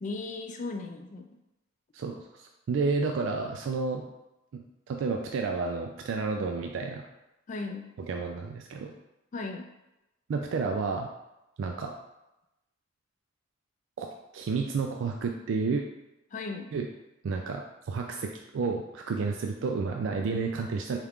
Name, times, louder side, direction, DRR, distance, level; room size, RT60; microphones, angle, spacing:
voice 1, 0.0-1.3 7.5-7.8 9.3-9.7 16.3-16.7, left 3 dB, 40° left, 4 dB, 0.4 m, -36 dB
voice 2, 1.9-4.0 4.5-7.0 8.0-8.9 10.3-11.1 11.6-11.9 14.0-14.1 14.3-15.8 16.7-16.9 17.2-21.0, right 4 dB, 70° right, 2 dB, 0.3 m, -31 dB
4.3 x 2.4 x 3.5 m, 0.93 s
head